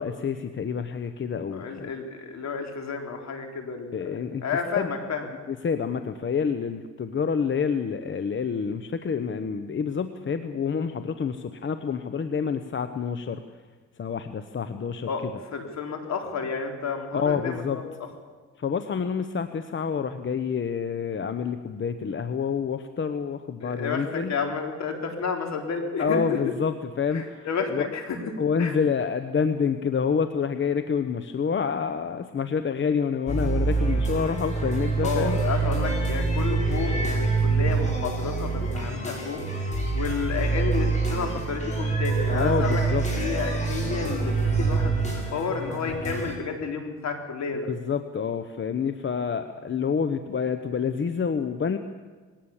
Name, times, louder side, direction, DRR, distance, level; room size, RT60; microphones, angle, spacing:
voice 1, 0.0-1.9 3.9-4.4 4.8-4.9 5.5-13.4 14.0-15.1 17.1-17.8 18.6-24.3 26.0-27.5 27.7-27.9 28.4-35.4 42.3-43.0 47.7-51.8, left 6 dB, 40° left, 9 dB, 1.0 m, -28 dB
voice 2, 1.5-4.2 4.4-5.3 15.1-15.2 15.5-17.9 23.6-26.4 27.1-28.2 28.6-28.8 35.0-39.5 39.9-42.8 43.1-47.7, left 5 dB, 60° left, 3 dB, 3.9 m, -31 dB
sound 1, 33.3-46.4, right 4 dB, 25° left, 7.3 m, -26 dB
21.0 x 18.0 x 7.3 m, 1.4 s
cardioid pair, 90°, 30 cm